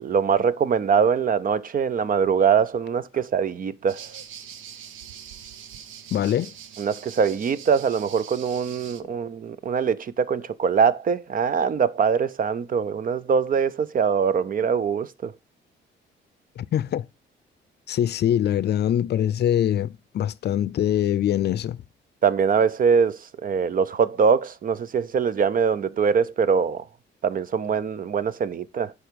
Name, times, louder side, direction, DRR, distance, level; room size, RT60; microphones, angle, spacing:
voice 1, 0.0-4.1 6.8-15.3 22.2-26.8 27.2-28.9, right 6 dB, 45° right, 0.6 m, -23 dB
sound 1, 3.9-9.0, right 8 dB, 80° right, 0.8 m, -43 dB
voice 2, 6.1-6.5 16.6-17.0 17.9-21.8, left 10 dB, 55° left, 0.5 m, -23 dB
7.7 x 4.9 x 5.1 m
cardioid pair, 90°, 20 cm